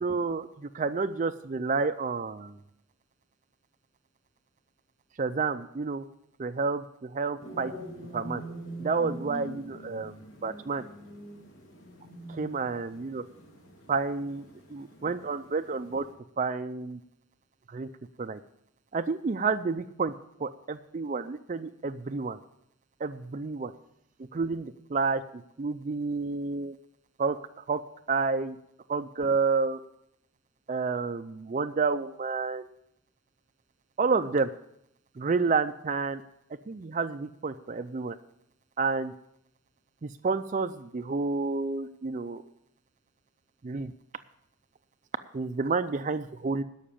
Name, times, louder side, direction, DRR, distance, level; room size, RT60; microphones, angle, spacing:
voice 1, 0.0-2.6 5.2-6.1 6.4-7.7 8.1-8.4 8.8-10.1 10.4-10.8 12.3-13.2 13.9-16.1 16.4-17.0 17.7-17.9 18.2-18.4 18.9-20.1 20.4-22.4 23.0-23.7 24.3-26.8 27.2-27.8 28.1-28.6 28.9-29.8 30.7-32.7 34.0-34.5 35.2-36.2 36.7-38.2 38.8-39.1 40.0-42.4 43.6-43.9 45.3-46.6, right 4 dB, 35° right, 8 dB, 0.4 m, -30 dB
sound 1, 7.4-16.1, right 1 dB, 75° left, 2.5 m, -44 dB
12.5 x 5.8 x 8.5 m, 0.77 s
head